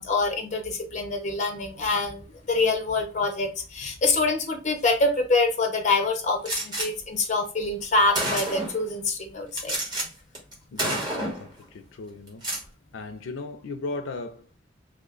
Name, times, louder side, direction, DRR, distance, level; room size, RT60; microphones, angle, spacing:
voice 1, 0.0-9.7, left 3 dB, 40° left, 0.8 m, -25 dB
Gunshot gunfire, 6.4-6.9 7.7-7.8 8.1-8.8 9.5-10.1 10.3-10.5 10.8-11.5 12.3-12.6, right 1 dB, 20° right, 1.1 m, -28 dB
voice 2, 10.7-12.5 12.9-14.6, left 3 dB, 85° left, 0.4 m, -37 dB
3.2 x 2.1 x 3.7 m
head